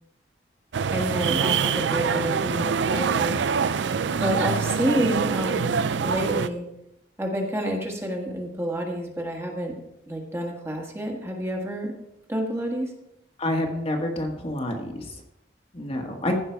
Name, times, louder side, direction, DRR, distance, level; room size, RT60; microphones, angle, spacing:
sound 1, 0.7-6.5, right 6 dB, 90° right, 0.4 m, -25 dB
voice 1, 0.9-3.4 4.2-6.6 7.2-9.8 10.1-11.9 12.3-12.9, right 1 dB, 15° right, 1 dB, 1.6 m, -28 dB
voice 2, 13.4-15.1 15.7-16.4, left 1 dB, 35° left, 2 dB, 1.5 m, -28 dB
15.0 x 5.8 x 4.6 m, 0.84 s
head